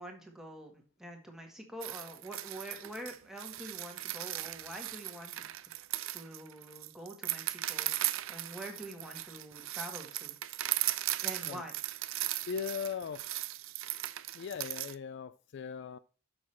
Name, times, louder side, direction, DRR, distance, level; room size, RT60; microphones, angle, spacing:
voice 1, 0.0-5.5 6.1-10.3 11.2-11.7, right 1 dB, ahead, 1.7 m, -46 dB
sound 1, 1.8-14.9, right 15 dB, 60° right, 0.5 m, -37 dB
voice 2, 12.5-13.3 14.3-16.0, left 6 dB, 50° left, 0.3 m, -39 dB
7.0 x 6.3 x 4.4 m
head